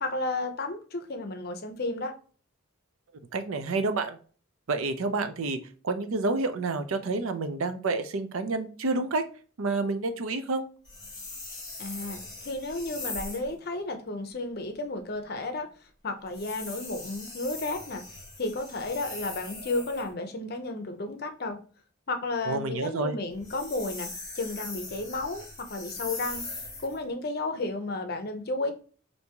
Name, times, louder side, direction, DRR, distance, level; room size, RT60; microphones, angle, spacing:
voice 1, 0.0-2.1 11.8-15.7 16.0-18.0 18.4-21.6 22.1-24.1 24.4-28.7, left 2 dB, 45° left, 6 dB, 0.6 m, -33 dB
voice 2, 3.3-4.2 4.7-5.6 5.8-9.2 9.6-10.7 22.5-23.2, right 3 dB, 75° right, 9 dB, 0.5 m, -29 dB
sound 1, 10.8-13.5 16.3-20.1 23.3-27.0, left 3 dB, 20° left, 1.5 m, -40 dB
3.4 x 2.6 x 2.8 m, 0.41 s
head